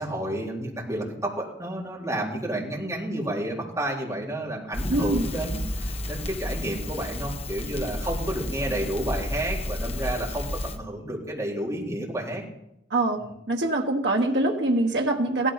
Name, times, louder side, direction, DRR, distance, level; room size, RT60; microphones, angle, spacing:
voice 1, 0.0-12.4 13.2-13.3, right 1 dB, 20° right, -4 dB, 4.0 m, -31 dB
Crackle, 4.7-10.8, left 1 dB, 35° left, 1.3 m, -32 dB
voice 2, 4.9-5.3 12.9-13.2 13.5-15.5, right 2 dB, 70° right, 1 dB, 1.3 m, -24 dB
17.0 x 13.5 x 5.8 m, 0.82 s
head